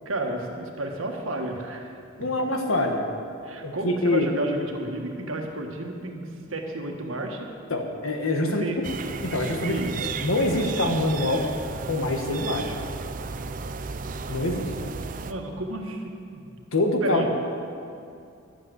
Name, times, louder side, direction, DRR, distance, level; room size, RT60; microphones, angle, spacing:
voice 1, 0.0-1.9 3.4-6.2 6.5-7.5 8.4-8.8 9.6-9.9 15.3-16.5 17.0-17.4, right 1 dB, 80° right, 2 dB, 1.6 m, -31 dB
voice 2, 2.2-3.1 3.6-4.3 7.7-8.6 9.2-9.8 10.2-11.4 11.9-12.7 14.3-14.7 16.7-17.3, left 2 dB, 85° left, 3 dB, 1.4 m, -25 dB
sound 1, 8.8-15.3, right 4 dB, 40° right, 0.5 m, -34 dB
12.0 x 8.3 x 8.0 m, 2.5 s
head